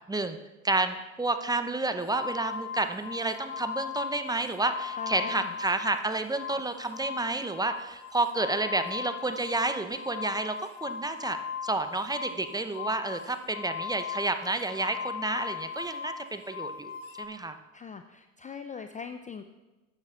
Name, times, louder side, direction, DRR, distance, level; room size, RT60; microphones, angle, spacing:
voice 1, 0.6-11.4 11.6-17.6, right 2 dB, 10° right, 8 dB, 0.7 m, -30 dB
sound 1, 2.1-6.0 6.3-17.3, left 7 dB, 70° left, 1.2 m, -38 dB
voice 2, 5.0-5.5 17.7-19.5, left 6 dB, 20° left, 8 dB, 0.4 m, -41 dB
13.0 x 9.6 x 2.5 m, 1.1 s
hypercardioid pair, 65°, 39 cm